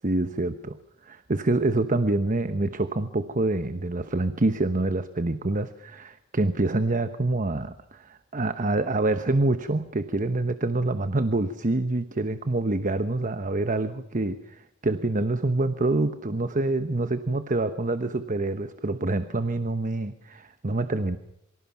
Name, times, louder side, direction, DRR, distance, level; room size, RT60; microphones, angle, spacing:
voice 1, 0.0-21.2, right 2 dB, 40° right, 10 dB, 1.0 m, -26 dB
27.0 x 24.5 x 6.0 m, 0.81 s
head